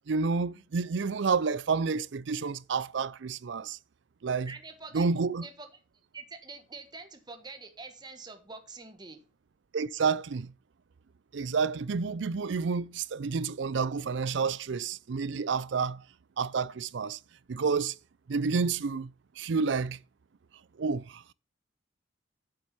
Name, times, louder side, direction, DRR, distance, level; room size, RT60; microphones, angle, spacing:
voice 1, 0.1-3.8 4.2-4.5 4.9-5.4 9.7-10.5 11.3-16.0 16.4-17.2 17.5-17.9 18.3-19.1 19.4-20.0 20.8-21.3, right 5 dB, 65° right, 0.4 m, -29 dB
voice 2, 4.5-5.8 6.1-9.2, right 3 dB, 20° right, 1.3 m, -46 dB
7.8 x 7.1 x 6.0 m
head